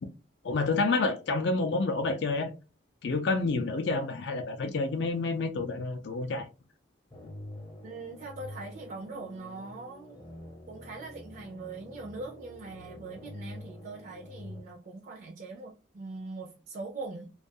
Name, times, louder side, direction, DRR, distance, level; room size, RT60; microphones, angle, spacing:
voice 1, 0.4-2.5 3.0-6.5, left 3 dB, 60° left, 0.4 m, -29 dB
sound 1, 7.1-14.6, left 1 dB, 25° left, 0.7 m, -46 dB
voice 2, 7.8-10.2 10.7-17.3, right 3 dB, 45° right, 0.4 m, -42 dB
2.3 x 2.3 x 2.6 m
head